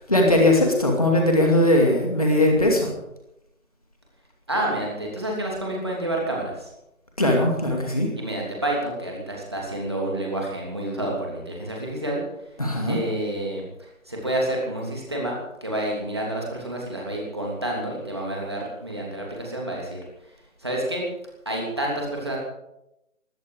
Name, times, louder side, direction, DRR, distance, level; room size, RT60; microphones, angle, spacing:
voice 1, 0.1-2.9 7.2-8.1 12.6-13.0, left 1 dB, 25° left, 1 dB, 2.3 m, -19 dB
voice 2, 4.5-6.7 8.2-12.2 12.9-20.0 20.6-21.0 21.4-22.4, right 1 dB, 20° right, -2 dB, 3.0 m, -29 dB
20.0 x 14.0 x 4.9 m, 0.87 s
figure-of-eight pair, 175°, 41 cm